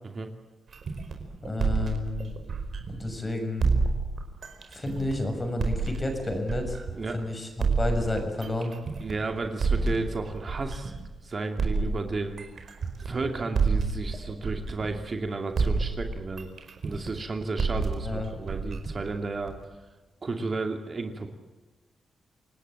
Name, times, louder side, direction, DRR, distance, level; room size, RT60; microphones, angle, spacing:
sound 1, 0.7-3.2 3.6-7.1 7.6-11.1 11.6-15.3 15.6-19.6, right 4 dB, 55° right, 4.9 m, -29 dB
voice 1, 1.4-2.3 2.9-3.6 4.7-6.8 7.1-8.7 18.0-18.3, left 2 dB, 25° left, 5 dB, 6.8 m, -31 dB
voice 2, 9.0-10.9 11.2-12.5 13.0-16.5 16.8-19.5 20.2-21.3, right 3 dB, 40° right, 5 dB, 2.7 m, -33 dB
28.0 x 18.5 x 9.0 m, 1.2 s
wide cardioid pair, 115°, 0 cm